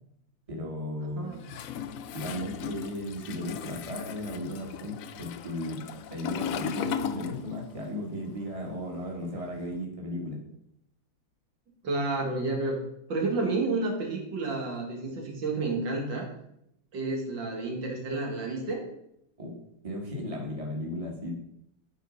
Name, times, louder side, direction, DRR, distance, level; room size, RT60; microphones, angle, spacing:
voice 1, 0.5-1.3 2.1-5.8 6.1-10.4 19.4-19.5 19.8-21.3, left 1 dB, 20° right, -1 dB, 1.7 m, -35 dB
voice 2, 1.2-1.5 11.8-12.8 13.1-16.3 16.9-18.8, right 3 dB, 80° right, 0 dB, 2.4 m, -30 dB
Toilet flush, 1.4-7.9 8.1-9.7, left 8 dB, 75° left, 0.7 m, -37 dB
12.5 x 4.3 x 5.2 m, 0.76 s
omnidirectional pair, 2.0 m